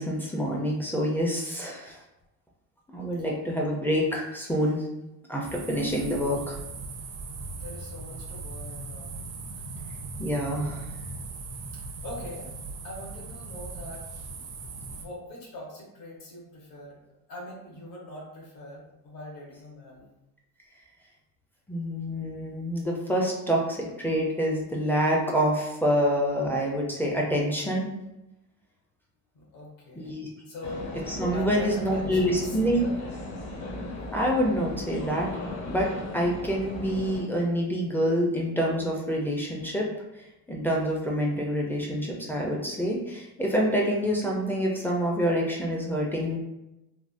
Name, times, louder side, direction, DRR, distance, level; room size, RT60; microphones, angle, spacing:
voice 1, 0.0-2.0 2.9-4.8 5.3-6.6 10.2-10.9 21.7-27.9 30.0-30.3 31.1-32.9 34.1-35.3 35.7-39.9 40.5-46.4, equal, 5° left, -3 dB, 0.4 m, -27 dB
sound 1, 5.4-15.0, right 3 dB, 45° right, 0.5 m, -39 dB
voice 2, 7.5-9.1 9.5-9.7 11.7-12.5 12.8-14.0 14.3-14.4 14.9-17.0 17.3-20.1 29.3-30.2 30.5-31.0 31.3-33.0, left 1 dB, 75° left, -3 dB, 1.2 m, -42 dB
sound 2, 30.6-37.2, left 1 dB, 50° left, 0.8 m, -37 dB
3.4 x 2.1 x 2.5 m, 0.94 s
cardioid pair, 140°, 35 cm